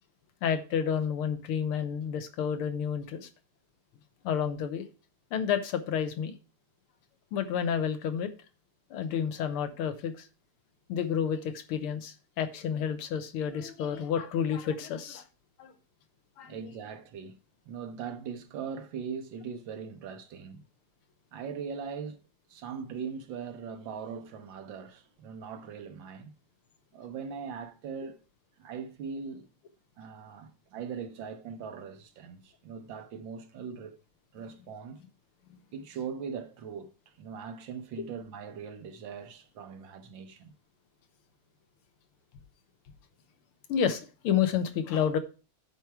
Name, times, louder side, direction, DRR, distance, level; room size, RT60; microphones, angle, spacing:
voice 1, 0.4-3.3 4.2-4.9 5.3-6.3 7.3-8.3 8.9-10.3 10.9-15.2 15.6-15.7 16.4-16.6 38.0-38.1 43.7-45.2, left 8 dB, 90° left, 1.8 m, -30 dB
voice 2, 16.4-17.4 17.6-20.6 21.3-22.2 22.5-26.3 26.9-28.2 28.6-29.5 30.0-34.0 34.3-35.0 35.7-40.5, right 6 dB, 70° right, 1.4 m, -40 dB
10.5 x 4.7 x 4.6 m
omnidirectional pair, 2.4 m